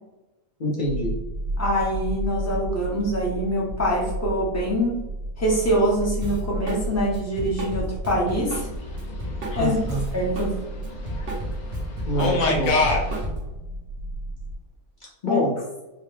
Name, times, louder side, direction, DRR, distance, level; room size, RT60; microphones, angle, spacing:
voice 1, 0.6-1.1 9.6-10.0 12.0-12.8 15.0-15.5, equal, 80° left, -4 dB, 0.4 m, -26 dB
sound 1, 0.8-14.5, right 1 dB, 65° right, 0.8 m, -33 dB
voice 2, 1.6-4.9 5.4-8.7 9.5-9.8 10.1-10.5 15.3-15.4, equal, 15° left, -4 dB, 0.5 m, -24 dB
Drum kit, 6.2-6.8 7.1-10.5 10.8-13.6, equal, 80° right, 1.7 m, -33 dB
sound 2, 8.5-11.8 12.2-13.2, left 3 dB, 55° left, 1.0 m, -26 dB
4.7 x 2.2 x 3.2 m, 1.1 s
omnidirectional pair, 1.9 m